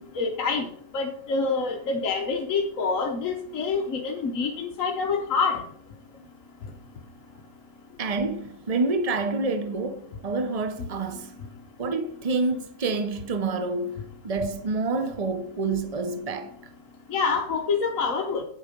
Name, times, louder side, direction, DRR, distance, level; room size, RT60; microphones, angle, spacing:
voice 1, 0.1-0.7 0.9-5.6 17.1-18.4, left 4 dB, 55° left, 1.2 m, -26 dB
voice 2, 8.0-11.3 11.8-16.5, right 3 dB, 75° right, 0.3 m, -28 dB
8.4 x 8.0 x 5.1 m
omnidirectional pair, 1.8 m